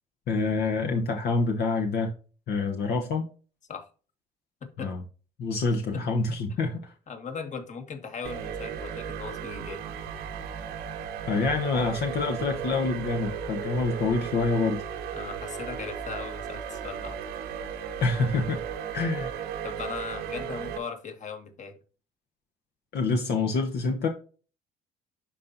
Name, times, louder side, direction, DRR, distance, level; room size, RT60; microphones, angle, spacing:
voice 1, 0.3-2.1 2.5-3.2 4.8-5.0 5.4-6.9 11.3-14.8 18.0-18.6 18.9-19.3 22.9-24.1, left 3 dB, 70° left, 3 dB, 1.2 m, -26 dB
voice 2, 7.1-9.9 15.1-17.2 19.6-21.7, left 5 dB, 45° left, 6 dB, 1.7 m, -38 dB
sound 1, 8.2-20.8, right 7 dB, 85° right, 1.3 m, -35 dB
11.5 x 4.1 x 2.6 m, 0.36 s
supercardioid pair, 85°, 17 cm